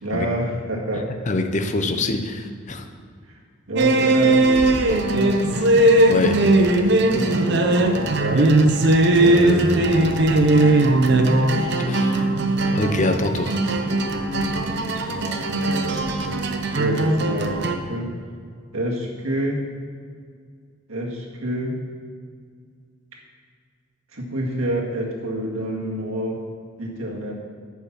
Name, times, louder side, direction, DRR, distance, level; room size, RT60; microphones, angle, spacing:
voice 1, 0.0-1.1 1.8-1.9 3.3-3.4 3.7-5.7 6.8-8.6 9.1-11.0 13.8-16.4 16.7-18.1 18.7-19.6 20.9-21.7 24.1-26.4 26.8-27.3, right 1 dB, 90° right, -2 dB, 1.9 m, -29 dB
voice 2, 1.3-2.9 6.1-6.4 9.2-9.7 11.9-12.2 12.7-13.6, left 2 dB, 35° left, 6 dB, 0.7 m, -24 dB
sound 1, 3.8-17.7, right 2 dB, 55° right, 0.7 m, -19 dB
10.5 x 5.6 x 5.9 m, 2.1 s
head